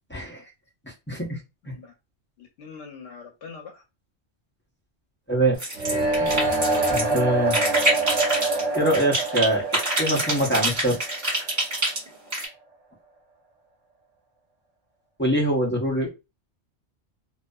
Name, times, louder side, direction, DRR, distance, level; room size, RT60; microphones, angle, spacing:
voice 1, 0.1-0.4 0.8-1.4 5.3-5.6 6.1-6.5 6.9-7.6 8.7-9.7 10.0-11.0 15.2-16.1, right 1 dB, 15° left, 0.5 m, -24 dB
voice 2, 2.4-3.8, left 5 dB, 75° left, 0.9 m, -43 dB
sound 1, 5.6-7.2 7.5-9.5 9.7-12.4, right 1 dB, 40° right, 1.6 m, -25 dB
sound 2, 5.8-11.7, right 2 dB, 85° right, 0.9 m, -26 dB
2.5 x 2.3 x 2.2 m
omnidirectional pair, 1.2 m